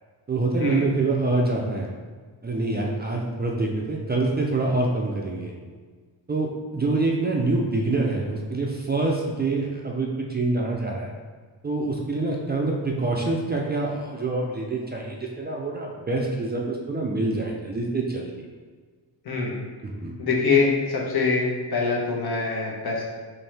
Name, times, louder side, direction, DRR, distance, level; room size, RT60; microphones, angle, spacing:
voice 1, 0.3-1.9 2.4-5.5 6.3-11.1 11.6-18.5 19.8-20.1, right 2 dB, 25° right, -1 dB, 0.4 m, -26 dB
voice 2, 19.2-19.6 20.2-23.0, left 4 dB, 65° left, -3 dB, 1.1 m, -24 dB
4.4 x 3.2 x 3.3 m, 1.5 s
wide cardioid pair, 155°, 42 cm